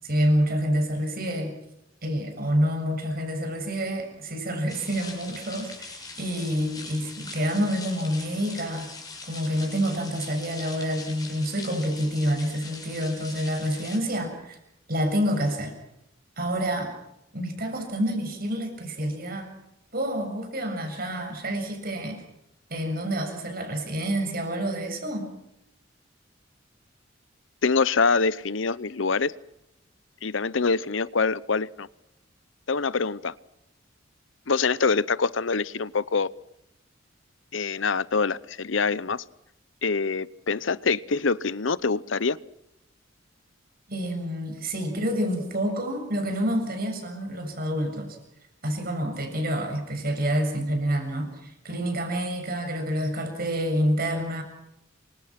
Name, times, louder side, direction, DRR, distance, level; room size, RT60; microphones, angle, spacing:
voice 1, 0.0-1.6 2.0-8.9 9.3-14.6 14.9-15.7 16.4-16.9 17.3-19.5 19.9-22.2 22.7-25.3 43.9-48.2 48.6-54.4, equal, 50° right, 5 dB, 7.1 m, -28 dB
sound 1, 4.7-14.0, left 3 dB, 20° left, 6.9 m, -42 dB
voice 2, 27.6-29.3 30.2-31.9 32.7-33.3 34.5-36.3 37.5-39.2 39.8-42.4, left 4 dB, 80° left, 19 dB, 0.8 m, -25 dB
28.0 x 25.0 x 6.0 m, 0.83 s
head